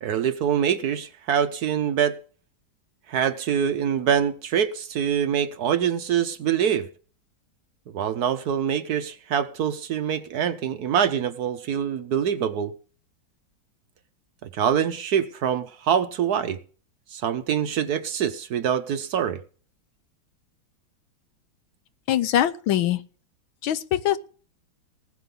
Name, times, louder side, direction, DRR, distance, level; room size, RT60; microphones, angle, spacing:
voice 1, 0.0-2.2 3.1-6.9 7.9-12.7 14.5-16.6 17.1-19.4, right 8 dB, 65° right, 1.1 m, -24 dB
voice 2, 22.1-23.0 23.6-24.2, left 11 dB, 90° left, 1.7 m, -22 dB
19.0 x 7.4 x 5.4 m
omnidirectional pair, 2.1 m